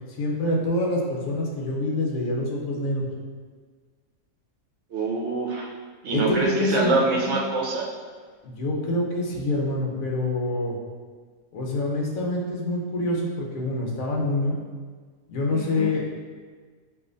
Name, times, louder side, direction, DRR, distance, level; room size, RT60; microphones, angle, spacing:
voice 1, 0.2-3.1 6.1-7.3 8.4-10.7 11.5-14.6 15.3-16.0, left 1 dB, 75° left, -2 dB, 1.2 m, -26 dB
voice 2, 4.9-5.7 6.0-7.9 15.5-15.9, right 3 dB, 60° right, -2 dB, 0.9 m, -25 dB
7.0 x 2.5 x 2.5 m, 1.5 s
omnidirectional pair, 1.5 m